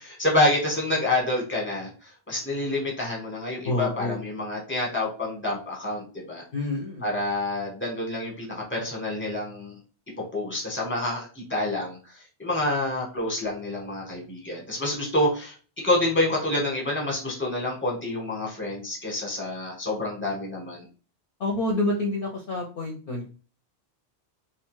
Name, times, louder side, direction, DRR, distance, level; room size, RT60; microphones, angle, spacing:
voice 1, 0.0-6.4 7.0-9.8 10.3-15.5 15.8-20.8, left 1 dB, 10° left, -1 dB, 0.8 m, -28 dB
voice 2, 3.6-4.2 6.5-7.1 21.4-23.3, left 2 dB, 60° left, 0 dB, 0.6 m, -28 dB
2.5 x 2.2 x 3.0 m, 0.37 s
omnidirectional pair, 1.1 m